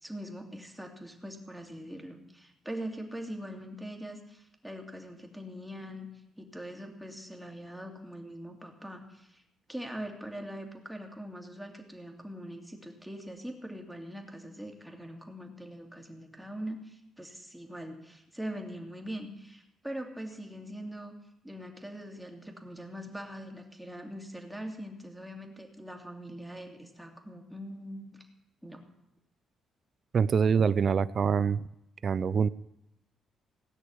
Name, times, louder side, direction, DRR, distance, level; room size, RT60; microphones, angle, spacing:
voice 1, 0.0-6.1 6.4-9.4 9.7-21.1 21.4-28.2 28.6-28.8 30.2-30.6, equal, 5° right, 2 dB, 2.6 m, -42 dB
voice 2, 30.1-31.6 32.0-32.5, right 6 dB, 50° right, 18 dB, 0.4 m, -25 dB
17.5 x 6.3 x 9.6 m, 0.84 s
cardioid pair, 90°, 0 cm